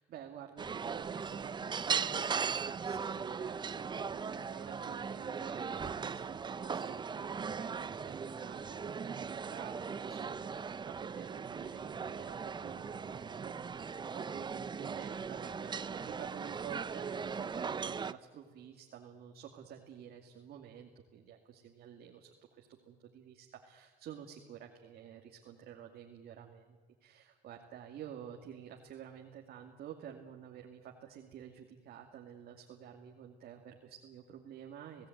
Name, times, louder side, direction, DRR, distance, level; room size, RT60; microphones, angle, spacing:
voice 1, 0.0-35.1, right 9 dB, 65° right, 1 dB, 2.6 m, -50 dB
sound 1, 0.6-18.1, right 6 dB, 25° right, 0.7 m, -38 dB
30.0 x 17.5 x 9.4 m, 1.5 s
cardioid pair, 110°, 17 cm